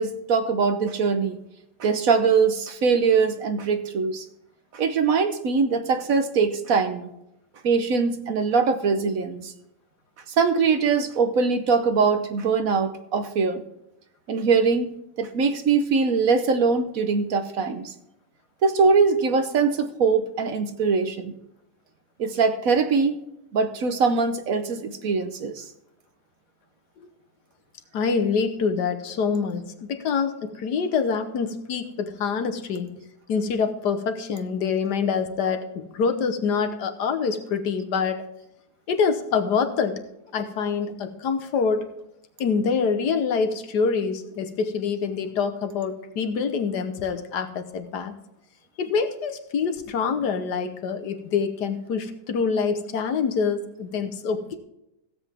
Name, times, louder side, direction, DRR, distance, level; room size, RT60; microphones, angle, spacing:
voice 1, 0.0-1.4 1.8-4.3 4.7-7.1 7.6-9.5 10.4-13.6 14.3-14.9 15.2-17.9 18.6-21.3 22.2-23.2 23.5-25.6, right 5 dB, 60° right, 9 dB, 1.2 m, -22 dB
voice 2, 27.9-32.9 33.3-38.2 38.9-40.0 40.3-41.9 42.4-48.1 48.8-54.6, left 5 dB, 80° left, 8 dB, 1.6 m, -25 dB
16.0 x 7.9 x 3.5 m, 0.85 s
omnidirectional pair, 1.8 m